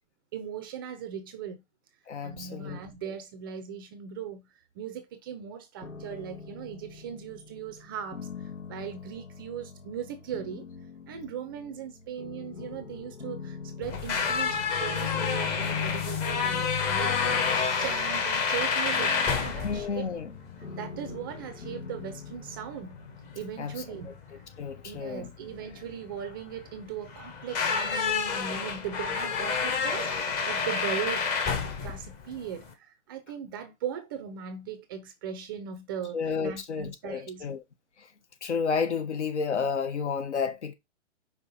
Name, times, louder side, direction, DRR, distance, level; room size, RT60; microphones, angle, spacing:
voice 1, 0.3-1.6 2.2-4.5 4.8-8.3 8.7-10.6 11.1-17.5 17.8-20.0 20.8-23.0 23.3-24.1 24.8-37.4, right 8 dB, 20° right, 0.5 m, -38 dB
voice 2, 2.1-3.1 19.5-20.3 23.6-24.1 24.6-25.3 36.1-37.6 38.0-38.1 38.4-40.7, left 5 dB, 70° left, 1.6 m, -31 dB
sound 1, 5.8-24.8, left 5 dB, 90° left, 1.9 m, -45 dB
sound 2, 13.8-32.7, left 6 dB, 20° left, 1.1 m, -29 dB
5.5 x 4.5 x 4.1 m
hypercardioid pair, 145°, 36 cm